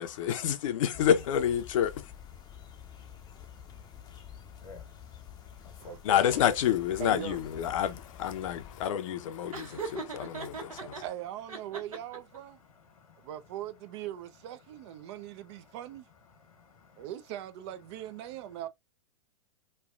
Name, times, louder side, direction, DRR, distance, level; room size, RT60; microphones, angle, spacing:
voice 1, 0.0-2.1 6.0-11.0, left 10 dB, 65° left, 0.7 m, -28 dB
sound 1, 0.9-8.9, left 9 dB, 25° left, 0.6 m, -49 dB
voice 2, 2.5-6.4 9.5-10.8 12.9-13.3 16.5-17.0, equal, 85° left, 1.2 m, -51 dB
voice 3, 5.8-6.4 7.0-7.4 10.8-12.6 13.2-16.1 17.0-18.7, right 12 dB, 50° right, 0.5 m, -41 dB
Laughter, 9.5-11.0 11.5-12.4, right 4 dB, 85° right, 1.1 m, -39 dB
3.2 x 2.4 x 2.4 m
hypercardioid pair, 115°, 18 cm